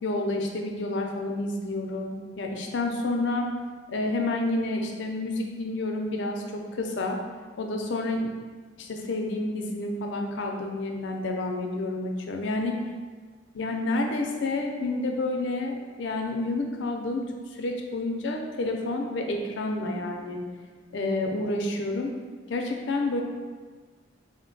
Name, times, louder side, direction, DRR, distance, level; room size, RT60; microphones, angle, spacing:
voice 1, 0.0-3.5 3.9-7.2 7.6-8.3 8.8-12.8 13.5-17.2 17.5-20.4 20.9-22.1 22.5-23.2, left 2 dB, 85° left, 2 dB, 0.5 m, -29 dB
3.8 x 2.2 x 3.9 m, 1.5 s
head